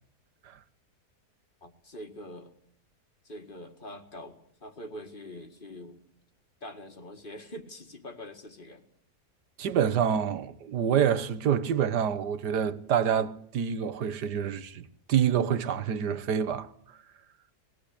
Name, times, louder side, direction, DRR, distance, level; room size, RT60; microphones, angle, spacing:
voice 1, 1.6-2.5 3.2-6.0 6.6-8.8, left 1 dB, 30° left, 2.0 m, -44 dB
voice 2, 9.6-16.7, right 8 dB, 90° right, 1.7 m, -27 dB
20.5 x 17.0 x 10.0 m
omnidirectional pair, 1.7 m